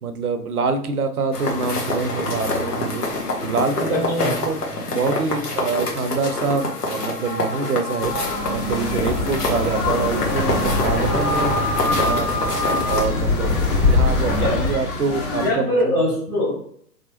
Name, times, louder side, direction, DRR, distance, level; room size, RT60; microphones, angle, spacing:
voice 1, 0.0-4.6 4.9-11.5 11.8-12.5 12.9-13.5 13.8-15.9, right 4 dB, 70° right, 8 dB, 0.6 m, -25 dB
sound 1, 1.3-13.0, left 2 dB, 75° left, 1.0 m, -25 dB
voice 2, 3.9-4.4 14.4-14.6 15.4-16.6, left 1 dB, 5° left, -8 dB, 0.5 m, -22 dB
sound 2, 8.0-15.5, left 2 dB, 40° left, 1.4 m, -29 dB
sound 3, 8.4-14.8, left 3 dB, 60° left, 1.3 m, -24 dB
3.4 x 2.8 x 2.8 m, 0.63 s
figure-of-eight pair, 110°, 47 cm